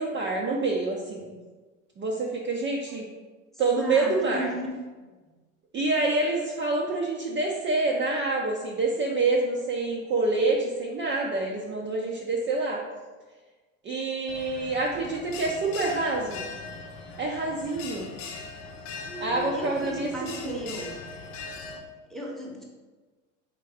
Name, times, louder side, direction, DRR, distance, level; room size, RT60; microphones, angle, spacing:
voice 1, 0.0-1.3 2.0-3.1 3.6-4.5 5.7-12.8 13.8-16.4 17.2-18.1 19.2-20.7, right 3 dB, 30° right, -2 dB, 0.6 m, -27 dB
voice 2, 3.8-4.7 5.0-5.1 19.0-20.9 22.1-22.6, left 1 dB, ahead, -1 dB, 0.9 m, -35 dB
Bell, 14.3-21.8, left 4 dB, 65° left, 0.8 m, -40 dB
4.0 x 3.6 x 3.4 m, 1.3 s
hypercardioid pair, 90°, 40 cm